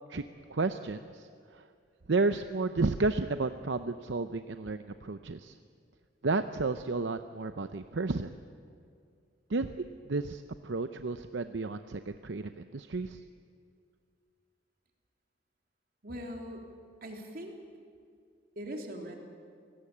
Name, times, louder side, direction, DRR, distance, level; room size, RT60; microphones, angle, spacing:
voice 1, 0.5-1.6 2.1-5.6 6.2-8.3 9.5-9.8 10.0-13.2, right 3 dB, 75° right, 9 dB, 0.7 m, -32 dB
voice 2, 16.0-16.6 17.0-17.6 18.5-19.1, equal, 50° right, 2 dB, 3.4 m, -40 dB
28.5 x 18.5 x 8.6 m, 2.3 s
head